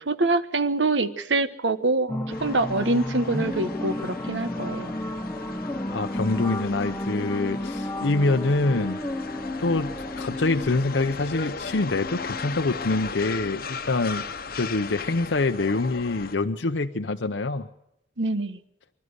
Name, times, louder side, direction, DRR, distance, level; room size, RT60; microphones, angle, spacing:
voice 1, 0.0-4.9 18.2-18.6, right 2 dB, 80° right, 12 dB, 1.3 m, -25 dB
sound 1, 2.1-13.9, left 1 dB, 10° left, 0.9 m, -33 dB
sound 2, 2.3-16.4, left 4 dB, 55° left, 1.0 m, -38 dB
voice 2, 5.9-9.0 9.6-14.2 14.5-17.7, left 3 dB, 80° left, 7 dB, 0.8 m, -25 dB
25.5 x 12.5 x 8.0 m, 0.83 s
head